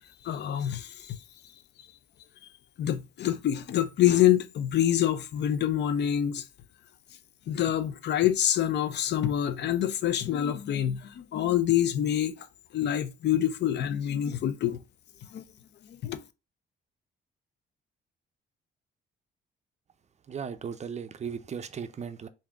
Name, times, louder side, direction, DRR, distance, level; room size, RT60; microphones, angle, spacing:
voice 1, 0.2-1.2 2.8-6.4 7.5-12.5 12.7-14.8 15.3-15.4 15.9-16.2, left 11 dB, 60° left, 0.4 m, -26 dB
voice 2, 20.2-22.3, right 7 dB, 35° right, 0.4 m, -37 dB
3.6 x 2.6 x 3.4 m
cardioid pair, 90°, 20 cm